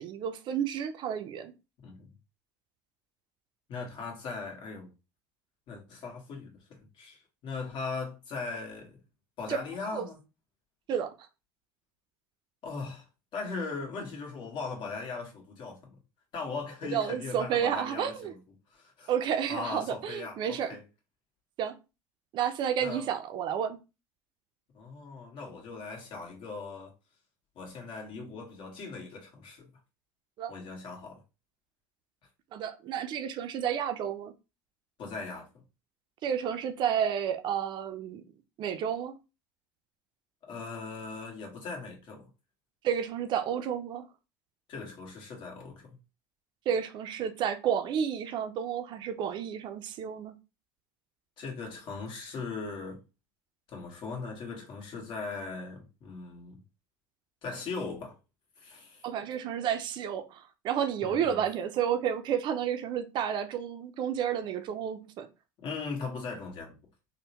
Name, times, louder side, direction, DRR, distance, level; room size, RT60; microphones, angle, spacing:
voice 1, 0.0-1.5 9.5-9.6 9.9-10.1 10.9-11.1 16.8-18.3 19.1-20.8 21.6-21.7 22.3-23.8 30.4-30.5 32.5-34.3 36.2-38.2 38.6-39.2 42.8-44.1 46.7-50.3 59.0-65.3, right 8 dB, 50° right, 0.5 m, -31 dB
voice 2, 3.7-4.9 5.7-9.0 9.4-10.2 12.6-13.0 13.3-15.9 16.3-18.4 18.7-19.1 19.5-20.8 22.8-23.0 24.7-26.9 27.5-29.7 30.5-31.2 35.0-35.6 40.4-42.3 44.7-46.0 51.4-53.0 53.7-56.6 57.4-58.2 58.6-59.0 61.0-61.4 65.6-66.8, left 4 dB, 55° left, 1.4 m, -39 dB
3.5 x 2.1 x 2.9 m
hypercardioid pair, 80°, 10 cm